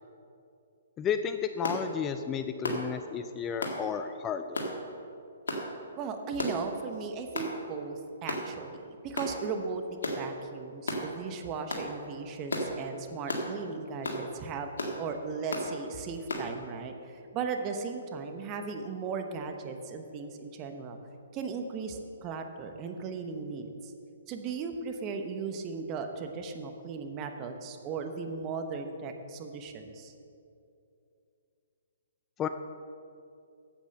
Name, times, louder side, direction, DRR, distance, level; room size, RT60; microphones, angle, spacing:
voice 1, 1.0-4.6 32.4-32.5, left 7 dB, 20° left, 9 dB, 0.4 m, -32 dB
sound 1, 1.6-1.8 2.6-2.9 3.6-3.8 4.5-4.7 5.5-5.7 6.4-6.6 7.3-7.5 8.3-8.5 9.1-9.3 10.0-10.2 10.9-11.0 11.7-11.9 12.5-12.7 13.3-13.5 14.0-14.2 14.8-15.0 15.5-15.7 16.3-16.5, left 1 dB, 75° left, 1.8 m, -33 dB
voice 2, 6.0-9.8 10.1-14.7 15.0-21.0 21.3-23.9 24.3-30.1, right 5 dB, 30° right, 6 dB, 1.0 m, -37 dB
8.5 x 8.0 x 6.6 m, 2.6 s
hypercardioid pair, 135°, 0 cm